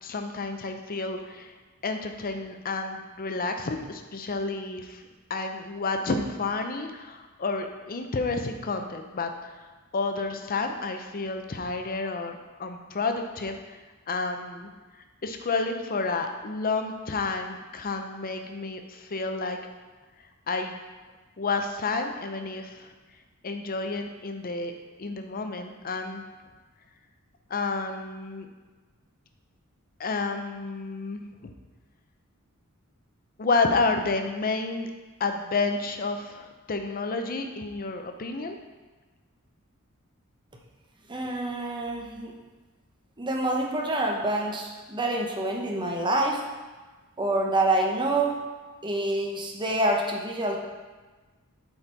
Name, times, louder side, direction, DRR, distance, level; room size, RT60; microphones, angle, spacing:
voice 1, 0.0-1.5 1.8-5.0 5.3-9.7 9.9-13.8 14.1-14.7 15.2-19.6 20.5-20.7 21.4-22.9 23.4-24.7 25.0-26.2 27.5-28.5 30.0-31.5 33.4-34.9 35.2-38.6, left 3 dB, 40° left, 6 dB, 0.6 m, -30 dB
voice 2, 41.1-42.3 43.2-46.4 47.2-48.4 48.8-50.6, right 2 dB, 20° right, 0 dB, 0.8 m, -27 dB
7.7 x 4.3 x 4.5 m, 1.3 s
head